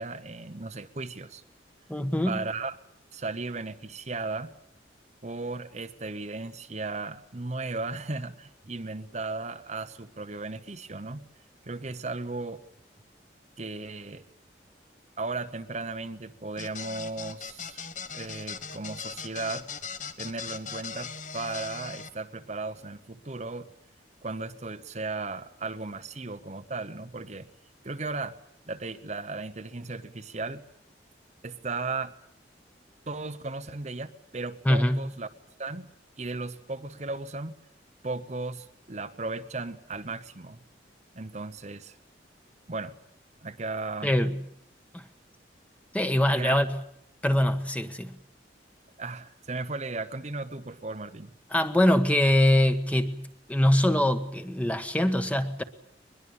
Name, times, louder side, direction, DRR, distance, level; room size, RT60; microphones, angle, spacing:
voice 1, 0.0-1.4 2.3-2.8 3.1-4.5 5.2-11.3 11.6-12.6 13.6-14.3 15.2-19.7 20.2-23.7 24.2-27.5 27.8-28.4 28.7-30.7 31.4-32.1 33.1-35.3 35.6-35.9 36.2-37.6 38.0-40.6 41.1-42.0 42.7-43.0 43.4-44.1 46.4-46.6 49.0-51.3, right 3 dB, 40° right, 9 dB, 1.0 m, -36 dB
voice 2, 1.9-2.4 34.6-35.1 44.0-44.4 44.9-45.1 45.9-46.8 47.2-48.1 51.5-55.6, left 1 dB, 10° left, 9 dB, 1.3 m, -23 dB
sound 1, 16.6-22.1, left 6 dB, 45° left, 1.4 m, -39 dB
23.0 x 21.5 x 8.8 m, 0.69 s
head